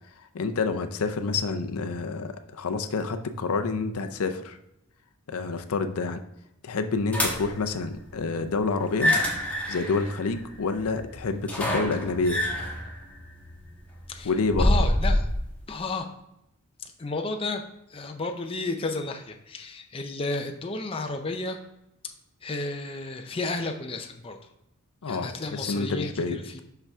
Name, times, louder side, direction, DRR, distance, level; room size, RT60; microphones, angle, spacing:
voice 1, 0.3-4.6 5.3-6.2 6.6-9.1 9.7-12.4 14.2-14.7 25.0-26.4, left 4 dB, 75° left, 8 dB, 0.5 m, -28 dB
sound 1, 7.1-7.7 8.8-15.4, left 1 dB, 5° left, 1.1 m, -27 dB
voice 2, 14.6-15.3 15.7-16.1 17.0-17.6 17.9-21.6 22.4-24.4 25.1-26.6, left 3 dB, 25° left, 4 dB, 0.5 m, -32 dB
5.7 x 5.7 x 3.5 m, 0.83 s
head